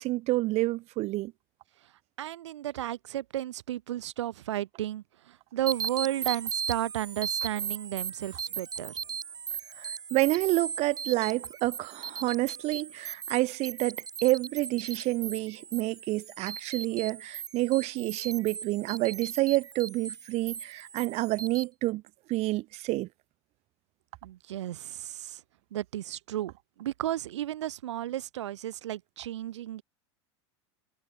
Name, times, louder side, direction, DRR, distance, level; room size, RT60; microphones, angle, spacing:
voice 1, 0.0-1.3 9.8-22.0 22.3-23.1, right 19 dB, 50° right, 0.6 m, -29 dB
voice 2, 2.2-9.0 24.2-25.4 25.7-26.5 26.8-29.8, right 13 dB, 85° right, 1.1 m, -33 dB
sound 1, 5.7-21.6, right 7 dB, 25° right, 3.7 m, -38 dB
hypercardioid pair, 100°, 15 cm